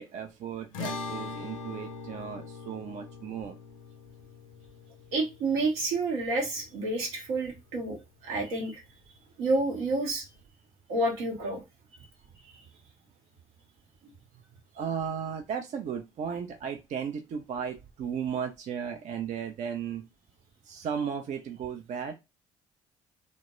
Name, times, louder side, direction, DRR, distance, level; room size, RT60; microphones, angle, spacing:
voice 1, 0.0-3.6 14.7-20.0 20.6-22.1, right 7 dB, 45° right, 4 dB, 0.4 m, -35 dB
sound 1, 0.7-7.3, left 4 dB, 80° left, 0.4 m, -42 dB
voice 2, 5.1-8.8 9.4-10.3 10.9-11.6 12.5-12.6 14.0-14.1, right 2 dB, 70° right, 1 dB, 0.9 m, -29 dB
2.2 x 2.0 x 2.9 m, 0.23 s
hypercardioid pair, 55°, 17 cm